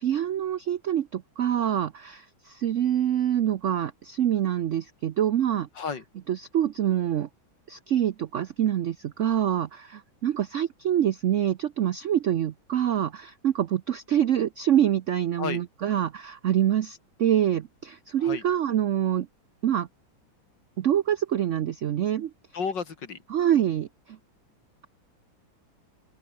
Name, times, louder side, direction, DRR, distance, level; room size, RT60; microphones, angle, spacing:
voice 1, 0.0-5.7 6.3-7.3 7.7-19.3 19.6-19.9 20.8-22.3 23.3-24.2, right 10 dB, 90° right, 0.6 m, -25 dB
voice 2, 5.7-6.0 15.4-15.6 18.2-18.5 22.5-23.2, left 5 dB, 60° left, 3.0 m, -32 dB
open air
omnidirectional pair, 2.2 m